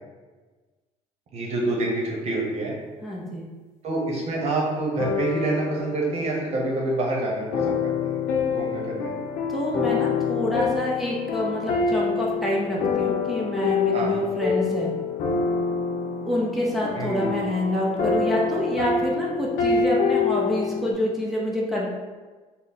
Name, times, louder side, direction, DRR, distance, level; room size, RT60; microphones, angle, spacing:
voice 1, 1.3-2.7 3.8-8.2 8.5-9.1 13.9-14.1 16.9-17.3, right 2 dB, 50° right, -2 dB, 0.9 m, -27 dB
voice 2, 3.0-3.4 9.5-14.9 16.3-21.9, left 1 dB, ahead, -5 dB, 0.7 m, -27 dB
sound 1, 5.0-20.9, left 5 dB, 80° left, 0.6 m, -26 dB
3.4 x 2.1 x 4.1 m, 1.3 s
cardioid pair, 110°, 14 cm